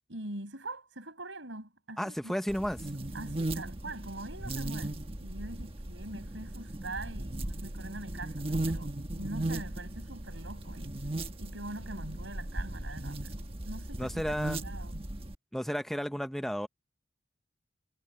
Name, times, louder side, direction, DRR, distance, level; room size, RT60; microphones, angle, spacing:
voice 1, 0.1-2.3 3.1-10.9 11.4-15.1, right 2 dB, 90° right, 6.1 m, -43 dB
voice 2, 2.0-2.9 14.0-14.6 15.5-16.7, equal, ahead, 0.8 m, -33 dB
sound 1, 2.5-15.4, right 1 dB, 30° right, 1.3 m, -37 dB
head